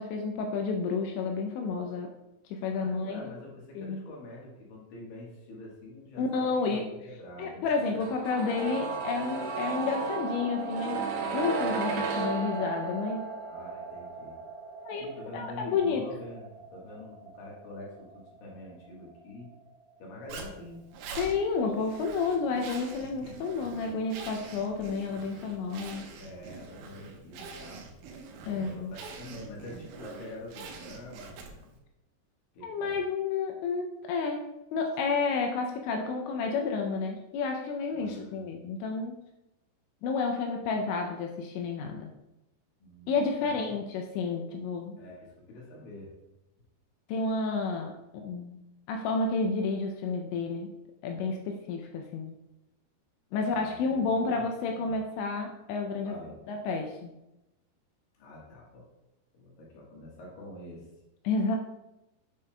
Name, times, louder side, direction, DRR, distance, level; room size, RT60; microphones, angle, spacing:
voice 1, 0.0-2.1 2.5-3.2 3.8-4.0 6.2-6.9 7.4-11.1 11.3-13.3 14.9-16.0 21.1-26.1 28.4-28.9 32.6-34.4 34.7-39.2 40.0-42.1 43.1-45.0 47.1-48.6 48.9-50.7 51.0-52.3 53.3-56.1 56.5-57.1 61.2-61.6, left 4 dB, 80° left, 3 dB, 2.7 m, -30 dB
voice 2, 2.6-7.6 13.5-14.4 15.0-19.5 20.0-20.8 22.9-23.4 26.1-27.8 28.5-31.7 32.5-33.0 37.9-38.4 42.8-43.5 45.0-46.1 53.4-54.4 54.7-55.0 56.0-56.4 58.2-58.9 59.3-60.9, left 1 dB, 65° left, -3 dB, 2.6 m, -46 dB
sound 1, 8.0-19.8 20.1-20.2, right 4 dB, 70° right, 3.1 m, -35 dB
Zipper (clothing), 20.3-31.8, right 4 dB, 85° right, 3.3 m, -45 dB
8.4 x 6.6 x 2.2 m, 0.94 s
omnidirectional pair, 5.5 m